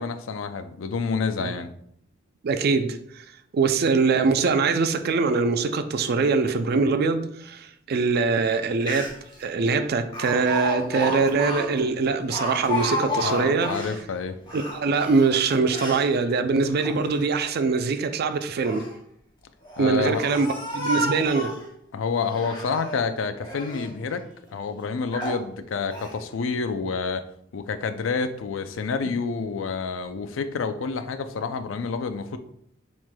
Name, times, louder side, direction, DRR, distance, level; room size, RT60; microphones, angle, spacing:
voice 1, 0.0-1.7 13.2-14.4 19.8-20.2 21.9-24.2 24.5-27.3 27.5-32.4, left 5 dB, 85° left, 0.4 m, -28 dB
voice 2, 2.4-3.2 3.5-9.1 9.4-13.9 14.5-18.8 19.8-21.5, right 4 dB, 55° right, 0.4 m, -23 dB
Speech, 8.5-8.6 8.8-9.3 10.1-14.0 14.4-16.1 16.6-17.4 18.4-18.9 19.6-21.7 22.2-23.0 23.4-23.9 24.5-24.6 25.1-25.4 25.9-26.1, equal, 25° left, 1.4 m, -31 dB
7.3 x 3.2 x 2.2 m
head